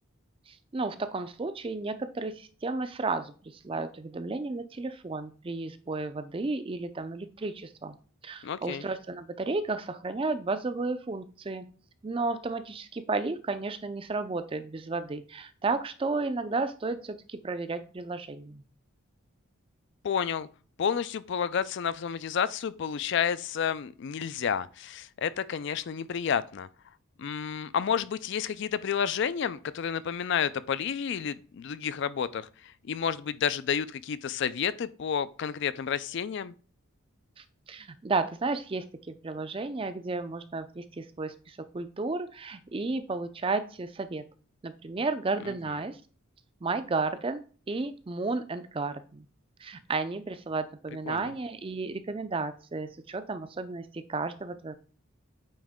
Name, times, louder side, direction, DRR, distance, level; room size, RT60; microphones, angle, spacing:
voice 1, 0.5-8.0 8.2-11.7 12.0-18.6 37.4-44.2 44.6-46.0 46.6-47.4 47.7-49.3 49.6-54.7, right 3 dB, 25° right, 0.4 m, -33 dB
voice 2, 8.4-8.8 20.0-20.5 20.8-26.7 27.2-36.5 45.4-45.5 51.1-51.3, left 7 dB, 55° left, 0.3 m, -30 dB
8.7 x 3.1 x 3.5 m
head